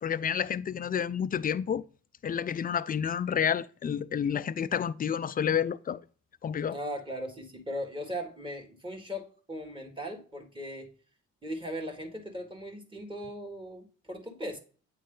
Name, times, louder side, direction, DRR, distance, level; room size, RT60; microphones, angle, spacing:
voice 1, 0.0-1.8 2.2-6.0 6.4-6.8, left 8 dB, 30° left, 0.4 m, -29 dB
voice 2, 6.7-10.9 11.4-14.6, equal, 15° right, 1.7 m, -38 dB
8.9 x 3.1 x 3.8 m
cardioid pair, 90°, 30 cm